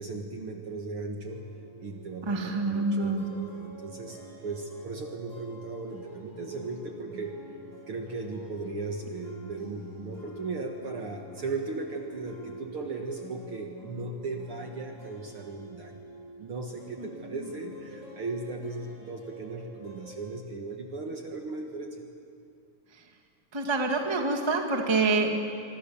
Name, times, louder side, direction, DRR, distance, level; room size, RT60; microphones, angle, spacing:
voice 1, 0.0-1.5 1.8-7.4 7.9-15.9 16.4-22.1, right 3 dB, 50° right, 2 dB, 1.8 m, -37 dB
Emotional Guitar, 1.2-20.4, equal, 35° left, 8.7 m, -47 dB
voice 2, 2.3-3.2 23.5-25.4, right 3 dB, 15° right, 3 dB, 1.0 m, -26 dB
25.5 x 25.0 x 7.1 m, 2.4 s
omnidirectional pair, 4.1 m